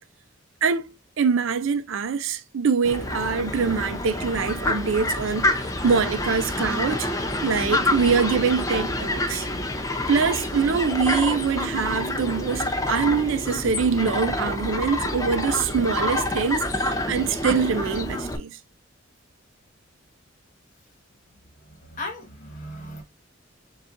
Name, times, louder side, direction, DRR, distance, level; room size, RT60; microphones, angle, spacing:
voice 1, 0.6-7.1 7.4-9.5 10.1-18.6, right 5 dB, 70° right, 0.4 m, -24 dB
Fowl, 2.8-18.4, left 1 dB, 15° left, 0.6 m, -27 dB
voice 2, 21.6-23.0, left 1 dB, 40° left, 1.4 m, -37 dB
6.8 x 2.4 x 2.5 m
head